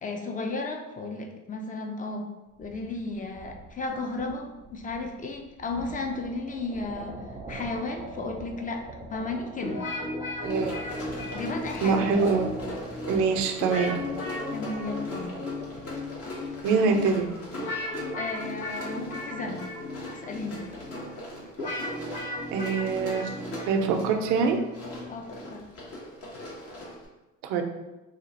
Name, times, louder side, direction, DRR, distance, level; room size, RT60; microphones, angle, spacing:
voice 1, 0.0-2.3 2.6-7.2 7.5-8.8 9.1-9.8 11.3-12.2 14.5-15.3 18.2-19.6 20.1-20.6 25.1-25.6, left 3 dB, 25° left, 3 dB, 0.6 m, -34 dB
sound 1, 2.5-17.3, right 2 dB, 20° right, 0.6 m, -44 dB
sound 2, 9.6-25.5, left 1 dB, 70° left, 1.2 m, -36 dB
Run, 10.4-27.1, left 1 dB, 50° left, 1.3 m, -41 dB
voice 2, 10.4-10.7 11.8-12.5 13.1-13.9 16.6-17.3 22.1-22.2 22.5-23.3 23.6-24.6 27.4-27.6, right 5 dB, 85° right, 4 dB, 0.6 m, -24 dB
2.8 x 2.4 x 4.0 m, 1.0 s
supercardioid pair, 85°, 30 cm